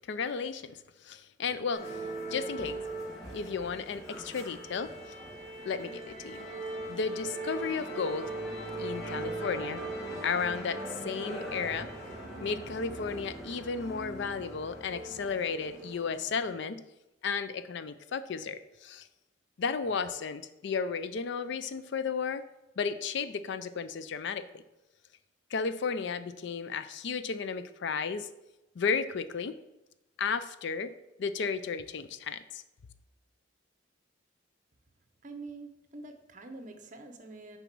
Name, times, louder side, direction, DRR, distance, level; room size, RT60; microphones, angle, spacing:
voice 1, 0.0-2.0 2.3-2.9 3.3-4.9 5.6-6.5 6.9-8.3 8.8-9.8 10.2-11.9 12.4-16.8 17.2-19.1 19.6-22.4 22.8-24.6 25.5-28.3 28.8-29.6 30.2-30.9 31.2-32.6, left 5 dB, 60° left, 13 dB, 0.4 m, -33 dB
Musical instrument, 1.7-16.4, right 2 dB, 90° left, 2.4 m, -40 dB
voice 2, 35.2-37.6, right 3 dB, 40° right, 7 dB, 0.8 m, -45 dB
7.0 x 4.0 x 6.0 m, 0.98 s
head